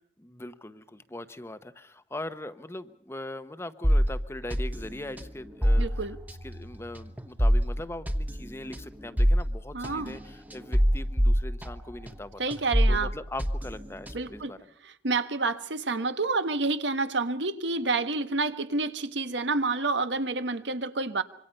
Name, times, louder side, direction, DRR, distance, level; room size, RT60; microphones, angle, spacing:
voice 1, 0.2-6.0 6.3-14.6, left 1 dB, 15° left, 0.9 m, -41 dB
sound 1, 3.8-12.2 12.5-14.4, equal, 10° right, 1.1 m, -27 dB
voice 2, 5.8-6.2 9.7-10.2 12.4-13.1 14.1-14.5 15.0-21.2, right 3 dB, 90° right, 1.4 m, -28 dB
26.0 x 24.0 x 5.5 m
head